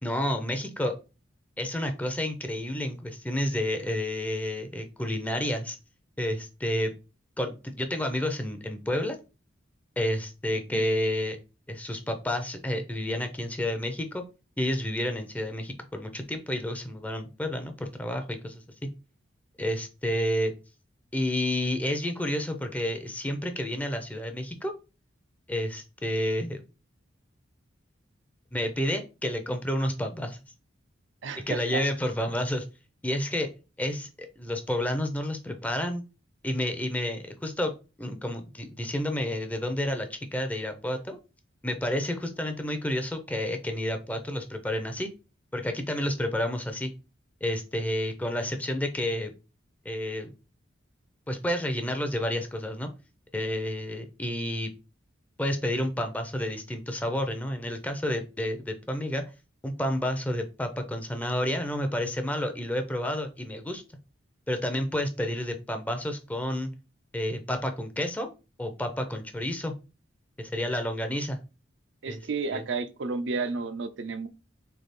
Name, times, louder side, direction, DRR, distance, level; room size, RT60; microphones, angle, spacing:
voice 1, 0.0-1.0 1.6-5.8 6.2-6.9 7.4-9.2 10.0-11.4 11.7-14.2 14.6-18.6 19.6-20.5 21.1-24.7 25.5-26.6 28.5-30.4 31.5-32.6 33.0-33.5 33.8-36.0 36.4-37.7 38.0-41.2 41.6-45.1 45.5-46.9 47.4-49.3 49.8-50.3 51.3-52.9 53.3-54.7 55.4-59.2 59.6-63.8 64.5-66.7 67.1-68.3 68.6-69.7 70.4-71.4 72.1-72.2 72.5-72.6, left 1 dB, 10° left, 0.5 m, -30 dB
voice 2, 31.2-31.8 72.0-74.3, right 4 dB, 65° right, 0.5 m, -32 dB
3.5 x 3.4 x 4.1 m
head